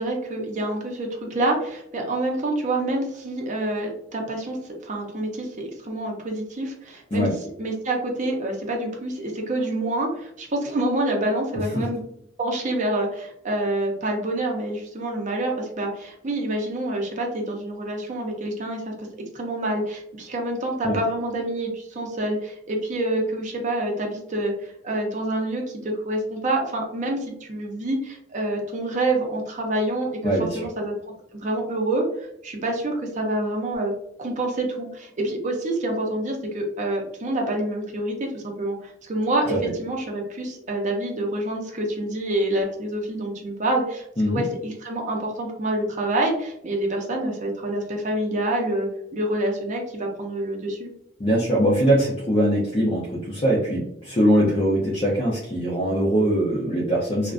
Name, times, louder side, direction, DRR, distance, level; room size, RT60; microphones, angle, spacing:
voice 1, 0.0-4.6 4.8-7.3 7.6-12.0 12.4-30.1 30.4-30.9 31.3-33.9 34.2-50.9, right 1 dB, 40° right, 1 dB, 0.5 m, -27 dB
voice 2, 30.2-30.6 39.5-39.6 44.2-44.4 51.2-57.3, equal, 30° left, -6 dB, 0.5 m, -22 dB
2.4 x 2.1 x 2.4 m, 0.75 s
head